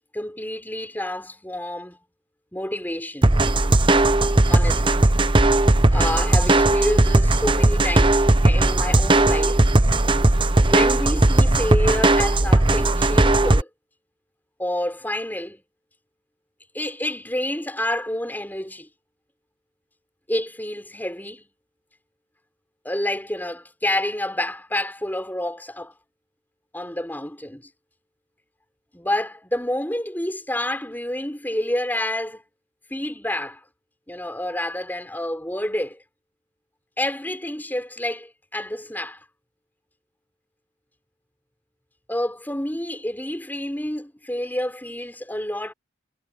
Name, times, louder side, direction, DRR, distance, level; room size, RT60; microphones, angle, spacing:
voice 1, 0.1-2.0 2.5-3.3 4.5-5.0 5.9-9.7 10.6-13.7 14.6-15.6 16.7-18.9 20.3-21.5 22.8-25.9 26.7-27.6 28.9-32.4 32.9-33.6 34.1-36.0 37.0-39.3 42.1-45.7, left 1 dB, 10° left, 5.8 m, -28 dB
sound 1, 3.2-13.6, right 2 dB, 25° right, 0.9 m, -17 dB
head